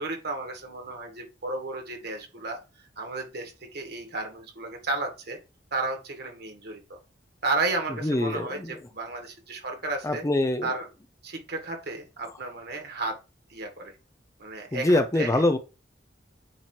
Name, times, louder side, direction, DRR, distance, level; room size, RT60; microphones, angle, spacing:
voice 1, 0.0-2.6 3.0-5.4 5.7-7.0 7.4-10.2 10.6-10.9 11.2-13.2 13.5-13.9 14.4-15.4, right 3 dB, 60° right, 2.1 m, -33 dB
voice 2, 8.0-8.8 10.0-10.7 14.7-15.6, left 1 dB, 15° left, 0.6 m, -24 dB
8.8 x 3.0 x 4.5 m
head